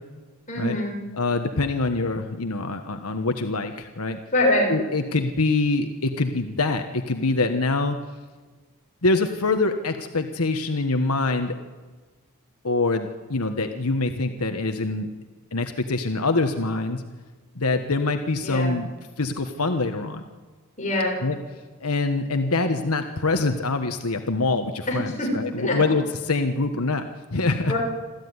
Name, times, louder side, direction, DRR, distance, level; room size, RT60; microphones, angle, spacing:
voice 1, 0.5-0.9 4.3-4.7 18.4-18.7 20.8-21.1 24.9-25.3 25.6-25.8 27.7-27.8, left 1 dB, 35° left, -1 dB, 6.4 m, -23 dB
voice 2, 1.1-4.2 4.7-8.0 9.0-11.6 12.6-15.1 15.5-17.0 17.5-18.9 19.2-20.2 21.2-21.4 21.8-27.7, left 3 dB, 85° left, 6 dB, 1.4 m, -24 dB
26.5 x 14.5 x 9.7 m, 1.4 s
head